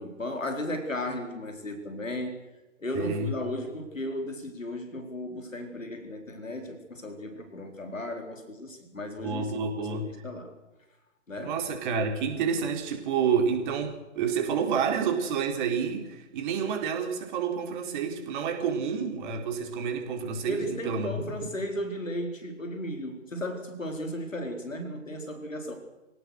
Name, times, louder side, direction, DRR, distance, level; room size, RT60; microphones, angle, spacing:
voice 1, 0.0-2.4 2.8-9.5 9.7-10.5 11.3-11.6 20.5-25.7, left 1 dB, 85° left, 5 dB, 4.6 m, -35 dB
voice 2, 2.9-3.4 9.2-10.2 11.4-21.3, right 6 dB, 40° right, 3 dB, 4.4 m, -29 dB
25.5 x 17.5 x 6.5 m, 1.0 s
figure-of-eight pair, 125°, 38 cm